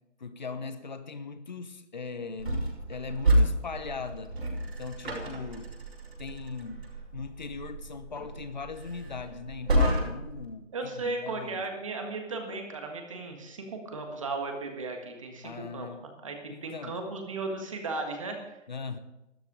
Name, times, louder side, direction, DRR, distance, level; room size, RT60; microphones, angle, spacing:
voice 1, 0.2-4.3 4.8-5.8 6.2-11.6 15.4-16.1 16.5-17.0 18.7-19.0, left 4 dB, 35° left, 11 dB, 0.9 m, -39 dB
sound 1, 2.4-10.4, right 1 dB, 55° right, 5.9 m, -30 dB
voice 2, 10.7-15.9 16.2-18.6, right 3 dB, 25° right, 4 dB, 1.6 m, -36 dB
13.0 x 11.5 x 5.0 m, 0.94 s
hypercardioid pair, 175°, 37 cm